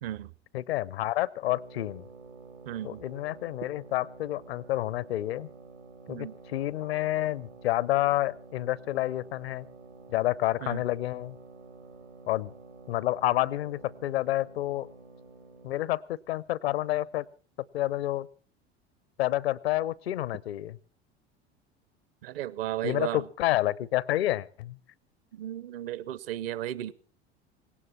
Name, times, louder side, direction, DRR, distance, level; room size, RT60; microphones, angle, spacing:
voice 1, 0.0-0.3 2.7-3.0 6.1-6.4 10.6-10.8 22.2-23.2 25.3-26.9, right 12 dB, 60° right, 0.8 m, -34 dB
voice 2, 0.5-2.0 2.8-5.5 6.1-9.7 10.1-11.4 12.3-12.5 12.9-14.9 15.6-17.2 17.7-18.3 19.2-20.8 22.8-24.8, left 15 dB, 65° left, 0.7 m, -29 dB
sound 1, 1.4-15.9, right 3 dB, 85° right, 2.7 m, -50 dB
19.0 x 17.5 x 4.2 m
figure-of-eight pair, 75°, 33 cm